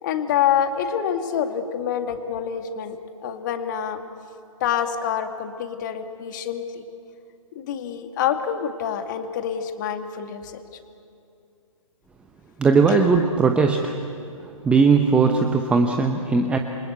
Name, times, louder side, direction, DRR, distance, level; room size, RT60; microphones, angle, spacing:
voice 1, 0.0-3.0 3.2-4.0 4.6-6.8 7.5-10.6 12.9-13.2, left 9 dB, 35° left, 7 dB, 2.1 m, -26 dB
voice 2, 12.6-14.0 14.6-16.6, right 4 dB, 5° right, 4 dB, 0.9 m, -18 dB
28.0 x 24.5 x 8.2 m, 2.6 s
figure-of-eight pair, 135°, 18 cm